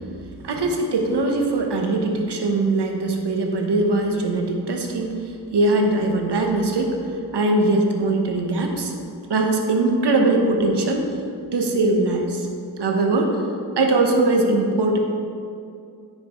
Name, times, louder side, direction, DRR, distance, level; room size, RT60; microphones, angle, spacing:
voice 1, 0.4-5.2 5.5-6.9 7.3-8.9 9.3-11.1 11.5-12.5 12.8-13.4 13.8-15.0, right 2 dB, 70° right, 2 dB, 1.1 m, -21 dB
9.3 x 5.6 x 3.1 m, 2.4 s
cardioid pair, 55°, 43 cm